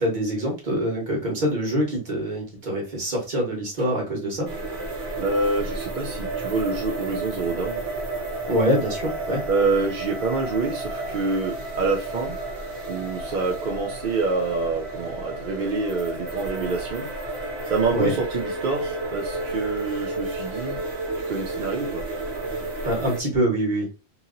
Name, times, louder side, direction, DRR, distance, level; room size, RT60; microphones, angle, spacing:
voice 1, 0.0-4.5 8.5-9.4 17.9-18.1 22.8-23.9, equal, 40° right, -2 dB, 1.3 m, -24 dB
sound 1, 4.5-23.2, right 2 dB, 80° right, 1.2 m, -32 dB
voice 2, 5.2-7.9 9.5-12.4 12.9-20.8 21.2-22.0, right 3 dB, 55° right, 0 dB, 0.5 m, -27 dB
2.8 x 2.8 x 2.5 m, 0.30 s
omnidirectional pair, 1.2 m